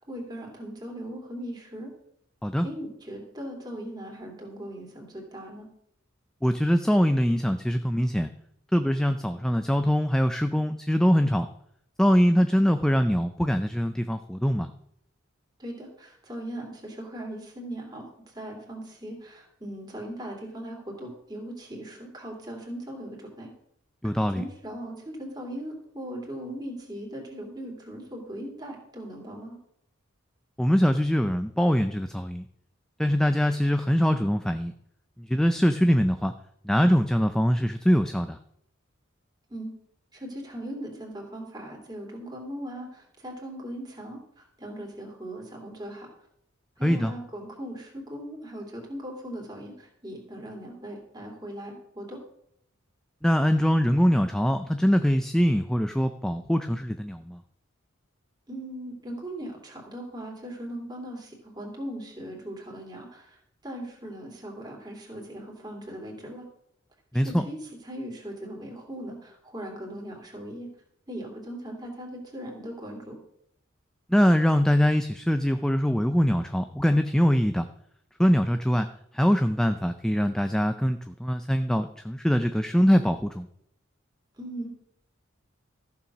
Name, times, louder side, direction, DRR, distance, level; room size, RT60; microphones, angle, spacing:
voice 1, 0.0-1.9 2.6-5.7 15.6-23.5 24.3-29.6 39.5-39.7 40.1-46.1 46.8-52.2 58.5-66.5 67.1-70.7 71.1-73.2 84.4-84.7, right 1 dB, 20° right, 0 dB, 3.0 m, -39 dB
voice 2, 6.4-8.3 8.7-11.5 12.0-14.7 24.0-24.4 30.6-32.4 33.0-34.7 35.3-36.3 36.6-38.4 46.8-47.1 53.2-57.4 67.1-67.5 74.1-77.7 78.2-78.9 79.1-83.5, equal, 5° left, 8 dB, 0.4 m, -23 dB
14.0 x 7.1 x 6.1 m, 0.72 s
head